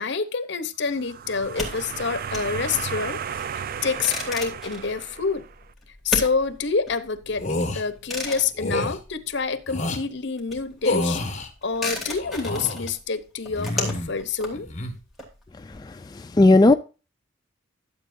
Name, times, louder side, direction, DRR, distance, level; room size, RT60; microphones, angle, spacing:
voice 1, 0.0-3.2 3.6-5.4 6.0-11.2 11.6-14.7, left 5 dB, 65° left, 0.9 m, -27 dB
sound 1, 0.9-5.6, right 7 dB, 50° right, 0.4 m, -34 dB
sound 2, 1.4-9.7 10.0-15.8, left 2 dB, ahead, 2.8 m, -35 dB
sound 3, 7.4-7.8 8.6-9.0 9.7-10.0 10.8-11.5 12.2-12.9 13.5-14.2 14.5-14.9, left 2 dB, 35° left, 1.7 m, -28 dB
voice 2, 15.6-16.7, left 2 dB, 20° left, 0.4 m, -17 dB
12.5 x 7.8 x 2.6 m
head